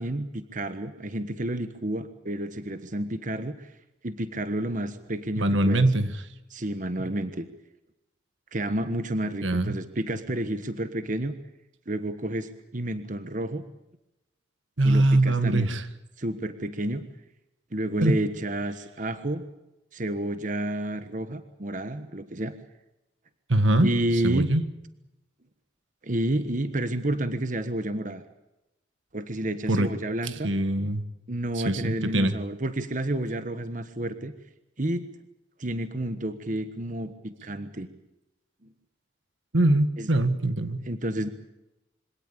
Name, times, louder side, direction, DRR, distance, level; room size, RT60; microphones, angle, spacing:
voice 1, 0.0-3.7 4.0-5.9 6.5-7.5 8.5-11.3 11.9-13.6 14.8-15.7 16.2-17.0 17.7-19.4 19.9-22.5 23.8-24.5 26.0-28.2 29.1-30.5 31.3-34.3 34.8-35.0 35.6-37.9 38.6-38.7 40.0-40.1 40.8-41.3, right 1 dB, 40° right, 10 dB, 1.3 m, -30 dB
voice 2, 5.4-6.1 9.4-9.7 14.8-15.8 18.0-18.1 23.5-23.9 24.2-24.6 29.7-29.9 30.4-31.0 31.7-32.3 39.5-40.8, right 1 dB, 80° right, 11 dB, 1.8 m, -22 dB
24.0 x 18.0 x 8.5 m, 0.92 s
head